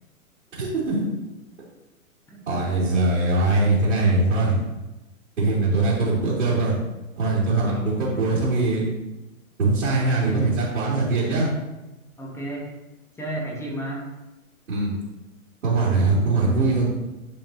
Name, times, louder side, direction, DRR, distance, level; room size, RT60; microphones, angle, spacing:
voice 1, 0.6-1.0 2.5-4.6 5.4-6.7 7.2-8.9 9.6-11.5 14.7-15.0 15.6-16.9, right 2 dB, 60° right, -8 dB, 2.6 m, -21 dB
voice 2, 7.5-7.8 10.1-10.6 12.2-12.7 13.1-14.1, right 1 dB, 5° left, -3 dB, 1.4 m, -33 dB
11.0 x 5.3 x 2.7 m, 1.0 s
figure-of-eight pair, 120°, 42 cm